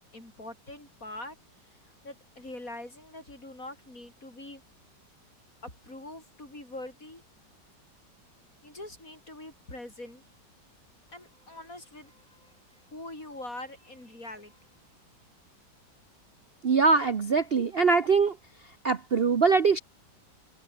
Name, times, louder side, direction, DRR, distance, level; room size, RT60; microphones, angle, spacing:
voice 1, 0.1-1.4 2.0-4.6 5.6-7.2 8.6-10.2 11.1-12.5 12.9-14.7, left 1 dB, 45° left, 8.3 m, -43 dB
voice 2, 16.6-18.3 18.8-19.8, right 4 dB, 40° right, 1.0 m, -22 dB
omnidirectional pair, 1.9 m